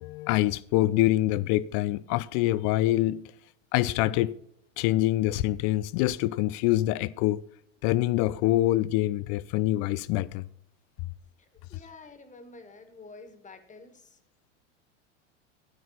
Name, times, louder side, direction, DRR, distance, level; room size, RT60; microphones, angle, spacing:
voice 1, 0.0-3.2 3.7-4.4 4.8-7.4 7.8-10.4, left 16 dB, 50° left, 0.7 m, -25 dB
voice 2, 11.4-14.2, left 3 dB, 20° left, 1.9 m, -49 dB
13.0 x 9.3 x 4.1 m
hypercardioid pair, 90°, 37 cm